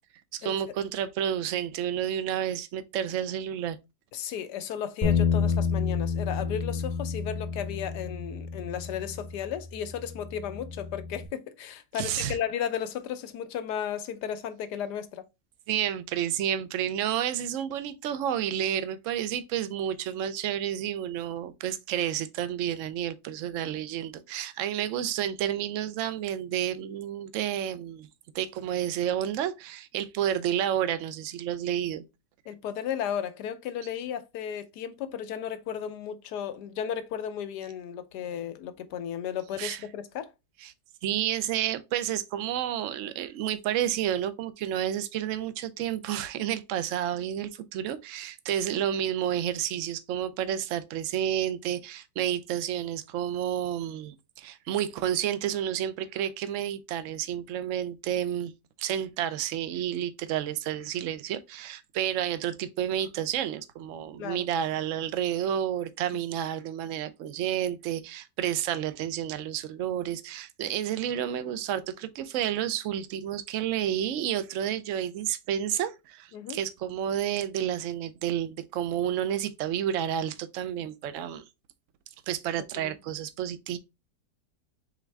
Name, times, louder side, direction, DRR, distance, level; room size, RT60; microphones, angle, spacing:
voice 1, 0.3-3.8 11.9-12.4 15.7-28.1 28.3-32.0 39.6-39.8 40.6-40.7 41.0-58.5 58.8-81.4 82.3-83.8, right 10 dB, 65° right, 0.8 m, -30 dB
voice 2, 4.1-15.2 32.5-40.3 64.2-64.5 76.3-76.6 82.7-83.0, left 9 dB, 80° left, 1.2 m, -34 dB
Bass guitar, 5.0-11.3, left 6 dB, 35° left, 0.6 m, -30 dB
4.7 x 3.5 x 3.2 m
omnidirectional pair, 1.8 m